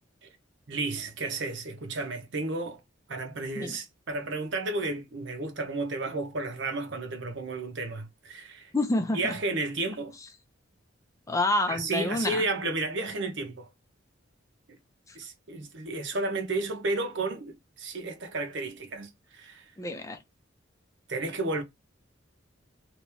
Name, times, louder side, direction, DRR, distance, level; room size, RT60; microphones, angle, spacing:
voice 1, 0.7-2.8 3.1-8.7 9.1-10.2 11.7-13.7 15.1-19.7 21.1-21.6, right 2 dB, 65° right, 1.0 m, -32 dB
voice 2, 8.7-9.3 11.3-12.4 15.1-15.2 19.8-20.2, left 2 dB, 15° left, 0.5 m, -28 dB
3.0 x 2.7 x 3.4 m
head